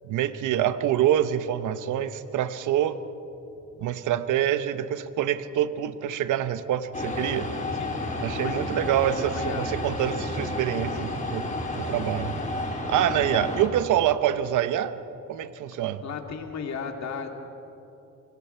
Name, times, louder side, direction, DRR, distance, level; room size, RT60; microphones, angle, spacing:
voice 1, 0.0-3.0 3.8-7.5 8.2-11.4 11.7-12.4 12.9-14.9 15.3-16.0, right 11 dB, 80° right, 12 dB, 1.0 m, -26 dB
sound 1, 6.9-13.7, left 2 dB, 25° left, 4.0 m, -31 dB
voice 2, 9.3-9.7 16.0-17.5, left 6 dB, 65° left, 3 dB, 2.8 m, -35 dB
26.5 x 24.0 x 4.6 m, 2.9 s
cardioid pair, 90°, 30 cm